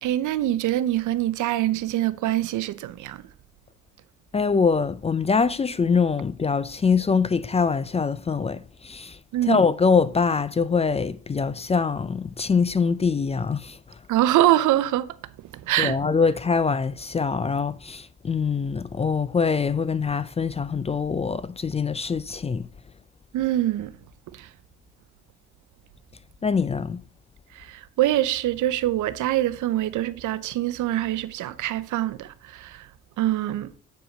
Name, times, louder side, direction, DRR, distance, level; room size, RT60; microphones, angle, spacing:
voice 1, 0.0-3.2 9.3-9.6 14.1-15.2 15.5-16.0 23.3-24.0 24.3-24.5 27.5-32.9 33.2-33.7, right 14 dB, 80° right, 0.7 m, -24 dB
voice 2, 4.3-9.2 9.5-13.8 15.8-22.7 26.4-27.0, left 5 dB, 20° left, 0.3 m, -24 dB
8.2 x 5.0 x 5.0 m
cardioid pair, 90°, 30 cm